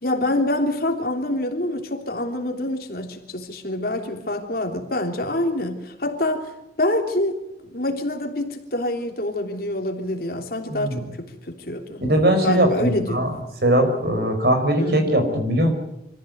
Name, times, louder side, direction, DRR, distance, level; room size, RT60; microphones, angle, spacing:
voice 1, 0.0-12.0 12.4-13.2 14.8-15.1, left 1 dB, 55° left, 4 dB, 3.2 m, -26 dB
voice 2, 10.7-11.0 12.0-13.3 13.6-15.7, right 1 dB, 60° right, 6 dB, 5.0 m, -20 dB
25.5 x 15.0 x 9.3 m, 0.86 s
head